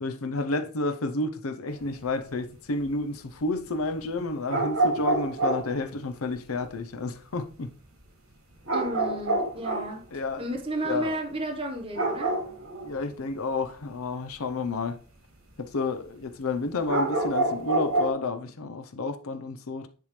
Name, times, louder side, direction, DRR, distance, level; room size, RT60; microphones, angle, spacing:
voice 1, 0.0-7.7 10.1-10.4 10.8-11.2 12.8-15.0 15.6-19.9, left 3 dB, 90° left, 0.7 m, -30 dB
sound 1, 1.7-2.0 4.5-5.8 8.7-9.9 11.9-13.1 16.9-18.1, right 2 dB, 75° right, 2.2 m, -27 dB
voice 2, 8.7-12.4, right 1 dB, 25° right, 1.1 m, -33 dB
10.0 x 3.7 x 3.2 m
head